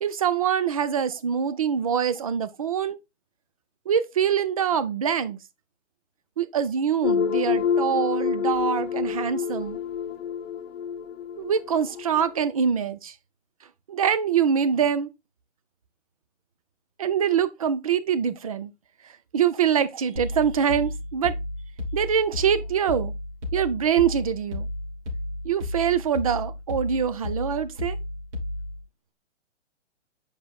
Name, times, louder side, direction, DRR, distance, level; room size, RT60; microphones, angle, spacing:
voice 1, 0.0-3.0 3.9-5.4 6.4-9.8 11.4-13.1 13.9-15.1 17.0-18.7 19.3-21.4 21.9-23.1 23.5-24.7 25.4-28.0, right 8 dB, 30° right, 0.4 m, -24 dB
sound 1, 7.0-12.4, left 7 dB, 50° left, 1.0 m, -27 dB
sound 2, 20.2-28.8, left 1 dB, 65° right, 3.1 m, -33 dB
8.2 x 5.0 x 2.3 m
hypercardioid pair, 145°, 38 cm